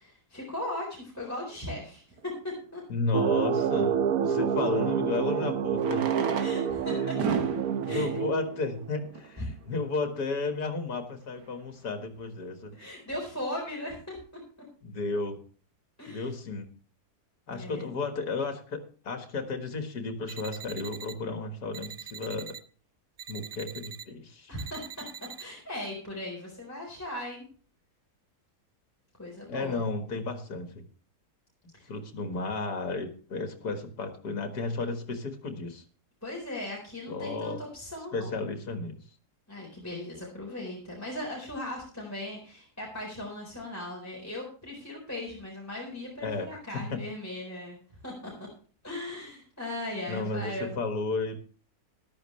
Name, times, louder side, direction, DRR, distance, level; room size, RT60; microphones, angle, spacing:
voice 1, 0.0-2.8 6.4-7.2 7.9-8.1 9.4-9.5 12.7-14.2 16.0-16.3 17.5-17.9 24.5-25.0 25.4-27.4 29.2-29.8 31.7-31.9 36.2-38.3 39.5-47.8 48.0-48.3 48.8-50.7, left 1 dB, 10° left, -3 dB, 4.1 m, -38 dB
Fireworks, 2.2-2.3 4.5-4.6 5.7-9.5 10.2-10.3 10.5-10.6 10.8-10.9 11.4-11.7, right 6 dB, 85° right, 1.9 m, -34 dB
voice 2, 2.9-6.1 7.1-7.2 7.9-12.7 14.8-15.4 16.1-16.7 17.5-22.5 23.3-24.5 29.5-30.8 31.9-35.8 37.1-37.6 38.1-39.0 46.2-47.0 50.1-51.4, left 3 dB, 70° left, 6 dB, 2.3 m, -33 dB
sound 1, 3.1-8.9, right 8 dB, 65° right, 1.1 m, -28 dB
sound 2, 20.3-21.1 21.7-22.6 23.2-24.0 24.6-25.4, right 7 dB, 50° right, 0.8 m, -43 dB
14.0 x 12.0 x 3.2 m, 0.41 s
omnidirectional pair, 1.7 m